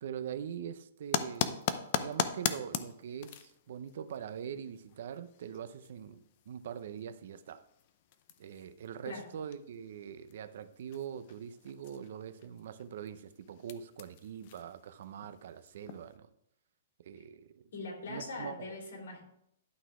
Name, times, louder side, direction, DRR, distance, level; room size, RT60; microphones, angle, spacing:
voice 1, 0.0-1.6 1.9-7.6 8.4-16.3 17.0-17.7 18.1-18.8, right 8 dB, 60° right, 0.6 m, -43 dB
sound 1, 1.0-16.2, left 9 dB, 40° left, 0.6 m, -41 dB
voice 2, 17.7-19.2, left 3 dB, 80° left, 3.3 m, -41 dB
11.5 x 4.1 x 4.8 m
hypercardioid pair, 160°, 0 cm